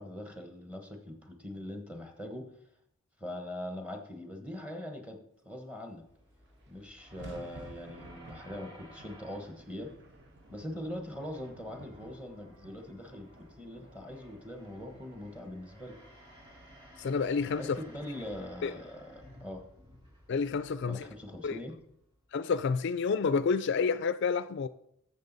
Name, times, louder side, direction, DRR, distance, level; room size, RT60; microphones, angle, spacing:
voice 1, 0.0-2.5 3.2-6.0 6.7-9.9 10.5-16.0 17.6-19.6 20.8-21.7, left 1 dB, 5° right, 1.1 m, -42 dB
sound 1, 6.0-22.3, equal, 25° right, 3.2 m, -56 dB
sound 2, 6.0-6.1 6.2-20.6, right 1 dB, 55° right, 1.0 m, -55 dB
voice 2, 17.0-17.8 18.6-18.7 20.3-21.1 21.4-21.6 22.3-24.7, left 5 dB, 55° left, 0.3 m, -29 dB
12.0 x 7.2 x 4.0 m
head